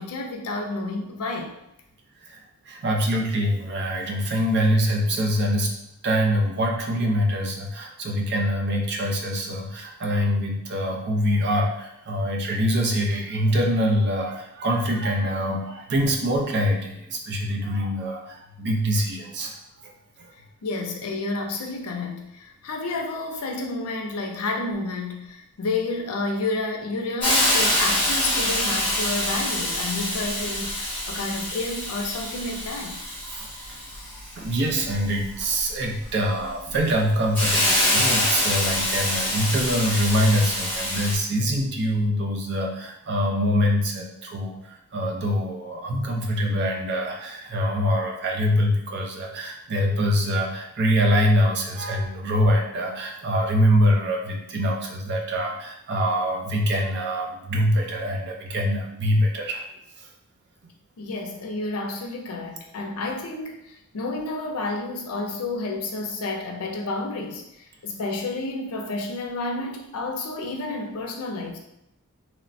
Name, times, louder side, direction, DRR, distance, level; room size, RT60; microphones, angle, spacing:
voice 1, 0.0-1.5 20.6-33.0 61.0-71.6, left 2 dB, 75° left, 2 dB, 0.5 m, -30 dB
voice 2, 2.7-5.7 6.0-19.9 20.2-20.3 33.3-33.5 34.4-59.6 60.0-60.1, equal, 50° right, 1 dB, 0.5 m, -24 dB
Hiss, 27.2-41.1, left 1 dB, 10° left, 0.8 m, -26 dB
3.0 x 2.1 x 2.5 m, 0.82 s
head